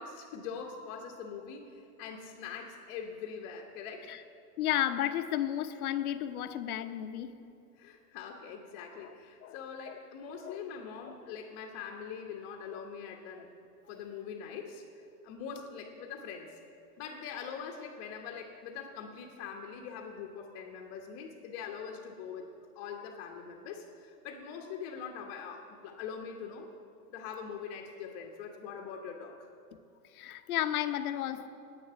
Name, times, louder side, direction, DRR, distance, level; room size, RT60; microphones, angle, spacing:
voice 1, 0.0-4.1 7.4-13.5 13.9-16.6 17.0-22.5 22.7-26.7 27.1-29.5, left 6 dB, 30° left, 0 dB, 1.2 m, -43 dB
voice 2, 4.6-7.3 9.4-9.5 9.9-10.0 10.5-10.6 11.1-11.2 30.1-31.5, left 11 dB, 65° left, 9 dB, 1.0 m, -32 dB
10.5 x 8.7 x 9.5 m, 2.6 s
hypercardioid pair, 150°, 48 cm